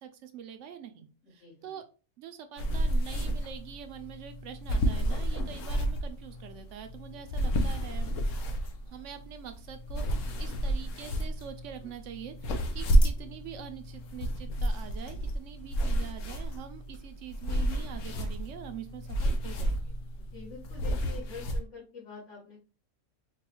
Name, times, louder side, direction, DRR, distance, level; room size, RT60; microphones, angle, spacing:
voice 1, 0.0-1.8 2.2-8.1 8.9-19.9, right 9 dB, 75° right, 7 dB, 0.9 m, -45 dB
voice 2, 1.2-1.8 20.2-22.6, left 5 dB, 70° left, -9 dB, 1.8 m, -46 dB
sound 1, 2.6-21.6, right 1 dB, 85° left, 1.1 m, -31 dB
4.7 x 2.2 x 2.9 m, 0.35 s
omnidirectional pair, 1.3 m